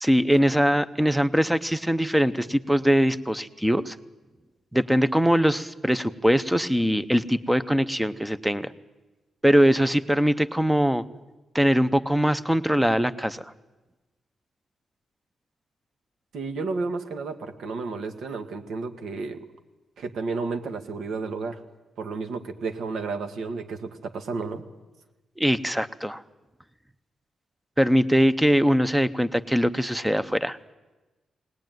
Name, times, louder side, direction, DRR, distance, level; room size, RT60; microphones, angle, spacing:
voice 1, 0.0-4.0 4.7-8.7 9.4-11.0 11.5-13.4 25.4-26.2 27.8-30.6, equal, 5° right, 13 dB, 0.7 m, -22 dB
voice 2, 16.3-19.5 20.0-21.6 22.0-24.6, right 4 dB, 75° right, 6 dB, 1.8 m, -32 dB
21.5 x 19.0 x 9.3 m, 1.2 s
wide cardioid pair, 155°, 0 cm